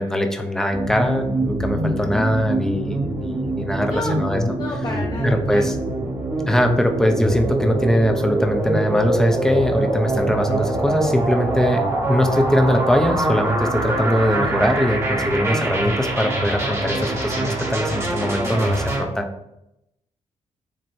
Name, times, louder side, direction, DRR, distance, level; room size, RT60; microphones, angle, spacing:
voice 1, 0.0-4.4 5.2-5.7 6.5-11.8 12.1-19.3, equal, 5° left, 4 dB, 0.9 m, -21 dB
sound 1, 0.7-19.0, right 1 dB, 25° right, 1.9 m, -24 dB
voice 2, 4.6-5.7, left 2 dB, 30° left, 0 dB, 0.8 m, -30 dB
Bass guitar, 10.2-16.4, right 6 dB, 40° right, 0.8 m, -38 dB
7.8 x 3.0 x 4.2 m, 0.83 s
cardioid pair, 120°, 12 cm